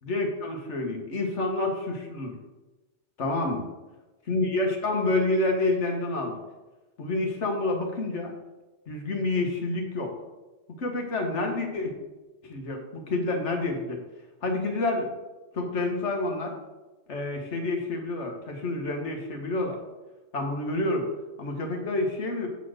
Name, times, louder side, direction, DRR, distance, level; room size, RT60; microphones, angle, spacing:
voice 1, 0.0-2.3 3.2-3.6 4.3-6.4 7.0-8.3 8.9-10.1 10.8-11.9 12.4-14.0 14.4-15.1 15.5-16.5 17.1-19.8 20.3-21.1 21.4-22.5, left 2 dB, 75° left, 3 dB, 1.6 m, -28 dB
8.2 x 4.1 x 6.4 m, 1.1 s
omnidirectional pair, 1.2 m